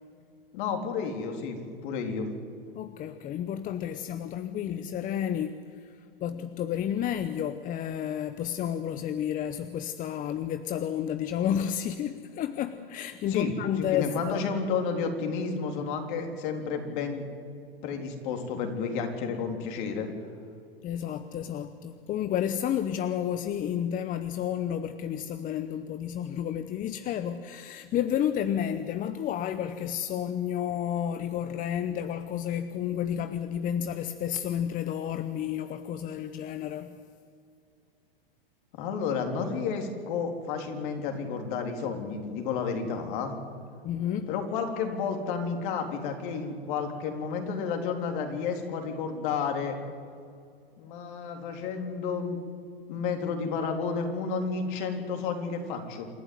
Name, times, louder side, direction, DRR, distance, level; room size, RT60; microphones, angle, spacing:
voice 1, 0.5-2.3 13.3-13.5 13.8-17.3 17.8-20.1 38.8-43.3 44.3-49.8 50.8-52.4 52.9-56.1, left 5 dB, 55° left, 3.7 m, -31 dB
voice 2, 2.8-5.6 5.8-14.1 20.8-37.0 43.8-44.3, left 9 dB, 25° left, 0.8 m, -31 dB
27.5 x 11.5 x 9.6 m
hypercardioid pair, 115°, 30 cm